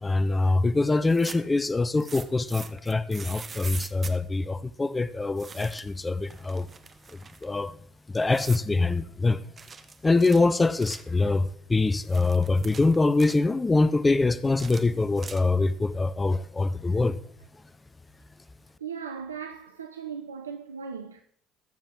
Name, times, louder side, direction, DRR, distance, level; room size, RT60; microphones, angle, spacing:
voice 1, 0.0-6.7 7.4-7.8 8.1-9.4 10.0-17.2, left 3 dB, 20° left, 0.5 m, -24 dB
sound 1, 1.0-1.6 2.0-4.2 5.4-6.0 6.3-7.5 8.3-8.7 9.6-11.1 11.9-13.4 14.4-15.7, right 5 dB, 30° right, 0.9 m, -43 dB
voice 2, 18.8-21.2, right 6 dB, 80° right, 0.5 m, -37 dB
20.5 x 7.2 x 3.7 m
figure-of-eight pair, 60°, 0 cm